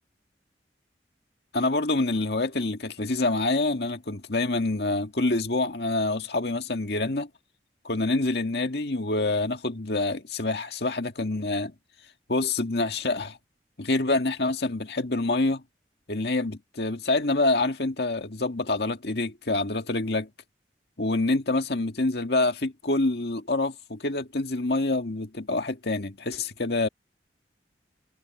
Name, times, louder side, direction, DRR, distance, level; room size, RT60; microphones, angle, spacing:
voice 1, 1.5-7.3 7.8-11.7 12.3-13.4 13.8-15.6 16.1-20.3 21.0-26.9, left 2 dB, 70° left, 1.9 m, -26 dB
head